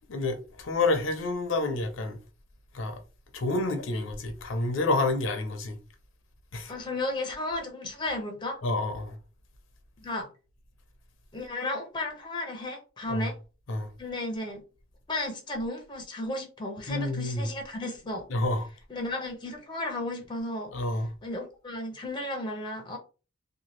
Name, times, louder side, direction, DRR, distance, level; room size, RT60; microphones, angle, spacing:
voice 1, 0.1-2.2 2.7-3.0 3.3-5.8 6.5-6.7 8.6-9.2 13.1-13.3 13.7-13.9 16.9-17.5 18.3-18.7 20.7-21.1, left 2 dB, 70° left, 0.6 m, -29 dB
voice 2, 6.7-8.6 10.0-10.3 11.3-13.4 14.0-14.6 15.1-18.2 18.9-20.7 21.2-23.0, left 2 dB, 25° left, 0.6 m, -34 dB
2.7 x 2.2 x 3.1 m
head